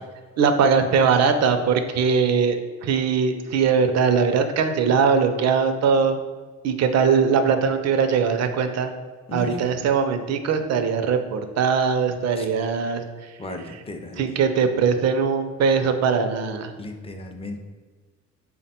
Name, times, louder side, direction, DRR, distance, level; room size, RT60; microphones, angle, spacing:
voice 1, 0.4-6.2 6.6-8.9 9.3-13.4 13.7-13.8 14.2-16.7, right 6 dB, 60° right, 8 dB, 0.4 m, -21 dB
voice 2, 13.4-14.3 16.8-17.6, left 2 dB, 20° left, 4 dB, 0.4 m, -35 dB
3.5 x 2.1 x 4.2 m, 1.4 s
cardioid pair, 90°, 30 cm